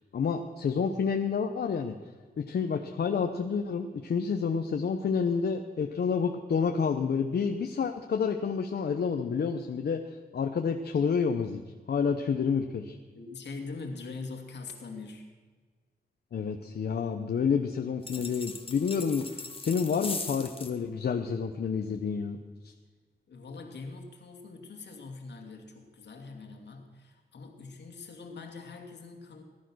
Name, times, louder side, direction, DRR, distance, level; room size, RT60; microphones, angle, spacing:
voice 1, 0.1-2.0 2.4-10.0 10.3-11.6 11.9-13.0 16.3-22.4 22.6-22.7, left 6 dB, 70° left, 5 dB, 0.9 m, -29 dB
voice 2, 13.1-15.3 23.3-29.4, left 3 dB, 85° left, 3 dB, 2.5 m, -43 dB
sound 1, 18.0-20.8, left 4 dB, 30° left, 1.4 m, -39 dB
19.0 x 12.0 x 6.3 m, 1.5 s
wide cardioid pair, 110°, 17 cm